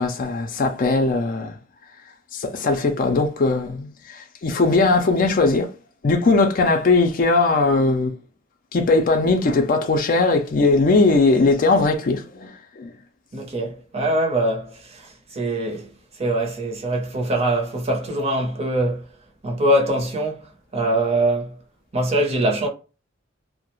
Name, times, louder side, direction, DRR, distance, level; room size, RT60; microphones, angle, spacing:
voice 1, 0.0-1.6 2.3-5.7 6.0-8.1 8.7-12.9, left 3 dB, 45° left, 0.4 m, -19 dB
voice 2, 13.3-15.9 16.2-19.1 19.4-20.4 20.7-21.5 21.9-22.7, right 1 dB, 35° right, 0.7 m, -23 dB
2.3 x 2.0 x 2.9 m
head